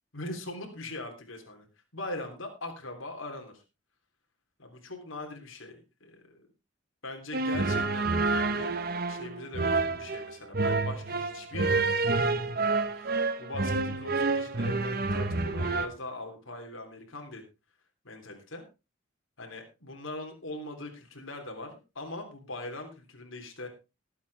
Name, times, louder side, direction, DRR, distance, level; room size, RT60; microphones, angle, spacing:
voice 1, 0.1-1.7 1.9-3.6 4.6-6.5 7.0-8.8 9.1-17.4 18.0-18.6 19.4-23.7, left 2 dB, 85° left, 3 dB, 3.4 m, -41 dB
sound 1, 7.3-15.9, right 3 dB, 50° right, 1.1 m, -28 dB
20.0 x 8.4 x 3.5 m, 0.28 s
head